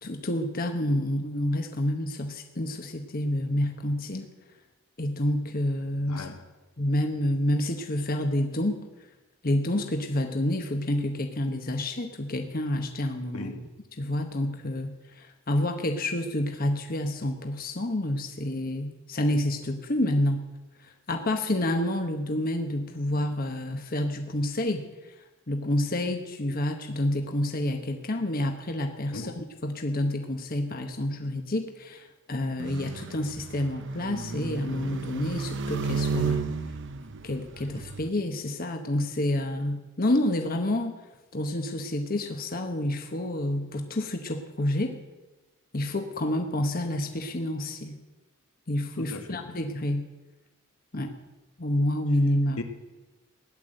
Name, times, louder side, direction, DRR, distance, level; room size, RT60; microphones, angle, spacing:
voice 1, 0.0-4.3 5.0-6.3 6.8-8.8 9.4-13.5 14.0-20.4 20.8-24.8 25.5-36.5 37.2-40.9 41.3-45.0 45.7-48.0 48.7-50.1 50.9-51.2 51.6-52.6, left 1 dB, 40° left, 1.2 m, -28 dB
voice 2, 6.1-6.4 13.3-13.7 29.1-29.4 49.0-49.4 52.6-52.7, left 2 dB, 85° left, 1.9 m, -37 dB
sound 1, 32.6-38.1, right 4 dB, 55° right, 0.8 m, -32 dB
17.0 x 11.0 x 7.8 m
head